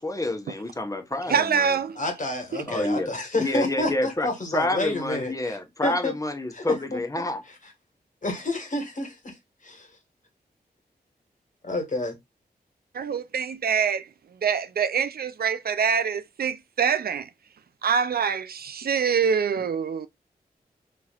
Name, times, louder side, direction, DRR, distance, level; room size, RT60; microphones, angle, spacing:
voice 1, 0.0-1.8 2.7-3.1 3.4-4.3 4.5-7.4, left 2 dB, 20° left, 1.1 m, -28 dB
voice 2, 1.3-2.0 12.9-14.1 14.4-17.3 17.8-20.1, right 6 dB, 70° right, 0.4 m, -25 dB
voice 3, 1.9-5.6 5.8-6.1 6.5-7.0 8.2-10.0 11.6-12.2, left 2 dB, 50° left, 1.5 m, -29 dB
4.4 x 3.0 x 2.4 m
cardioid pair, 50°, 17 cm